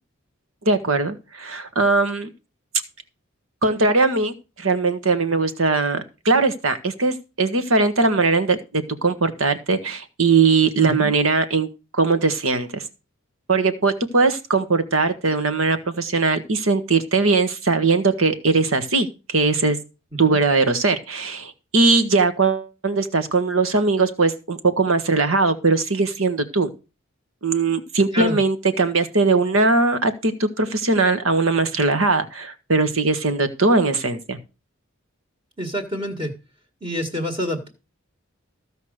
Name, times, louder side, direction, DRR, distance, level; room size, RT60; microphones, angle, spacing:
voice 1, 0.6-2.3 3.6-11.7 11.9-12.8 13.5-19.8 20.2-26.7 27.4-34.4, right 3 dB, 75° right, 10 dB, 1.6 m, -20 dB
voice 2, 10.8-11.1 28.1-28.4 35.6-36.3 36.8-37.7, equal, 25° right, 3 dB, 1.8 m, -27 dB
15.0 x 5.3 x 6.5 m, 0.30 s
head